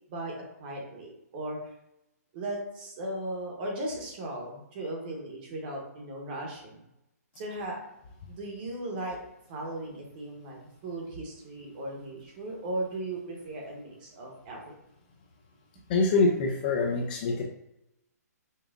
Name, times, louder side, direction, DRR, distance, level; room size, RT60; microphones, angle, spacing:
voice 1, 0.1-1.7 2.3-6.9 7.3-7.8 8.3-9.2 9.5-14.7, right 1 dB, 35° right, 0 dB, 1.0 m, -37 dB
voice 2, 15.9-17.4, left 3 dB, 30° left, 1 dB, 0.5 m, -25 dB
5.4 x 2.4 x 2.5 m, 0.85 s
hypercardioid pair, 160°, 9 cm